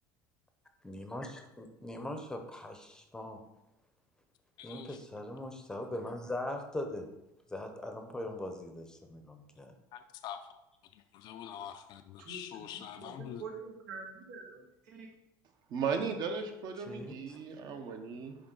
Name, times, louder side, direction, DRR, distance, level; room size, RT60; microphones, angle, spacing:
voice 1, 0.8-3.4 4.6-7.1 7.5-9.7 16.9-17.4, left 1 dB, 5° left, 5 dB, 0.7 m, -41 dB
voice 2, 4.6-5.0 9.9-10.4 10.9-13.4, left 10 dB, 50° left, 7 dB, 0.4 m, -45 dB
voice 3, 12.7-15.1, right 4 dB, 85° right, -1 dB, 2.0 m, -46 dB
voice 4, 15.7-18.4, right 5 dB, 45° right, 6 dB, 1.0 m, -36 dB
10.5 x 3.6 x 3.9 m, 0.93 s
cardioid pair, 145°, 10 cm